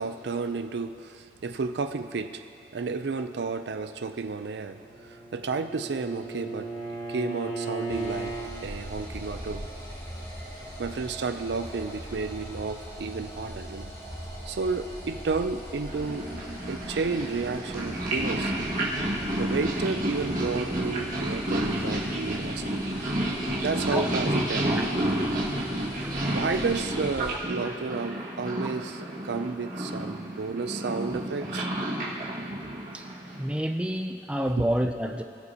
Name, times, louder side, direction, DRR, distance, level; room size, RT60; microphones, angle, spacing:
voice 1, 0.0-2.4 2.7-6.7 7.1-8.4 8.6-9.6 10.8-13.9 14.5-16.3 16.7-18.5 19.4-22.8 23.6-25.2 26.3-31.7 34.6-34.7, right 4 dB, 75° right, 9 dB, 0.5 m, -32 dB
Bowed string instrument, 4.7-8.5, right 3 dB, 40° left, 2.7 m, -36 dB
sound 1, 7.9-27.3, equal, 20° left, 2.4 m, -41 dB
Purr, 15.9-33.5, right 1 dB, 50° right, 1.7 m, -30 dB
voice 2, 23.5-24.1 25.6-26.4 32.9-35.2, equal, 5° right, 5 dB, 0.4 m, -30 dB
20.5 x 6.9 x 2.9 m, 2.6 s
head